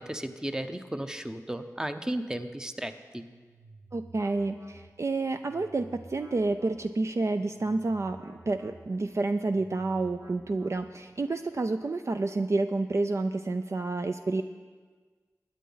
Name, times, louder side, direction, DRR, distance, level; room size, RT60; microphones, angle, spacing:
voice 1, 0.0-3.2, right 1 dB, 10° right, 8 dB, 0.7 m, -34 dB
sound 1, 3.2-11.2, right 2 dB, 90° right, 1.3 m, -52 dB
voice 2, 3.9-14.4, right 3 dB, 50° right, 8 dB, 0.4 m, -29 dB
21.5 x 9.3 x 4.0 m, 1.5 s
wide cardioid pair, 80°, 6 cm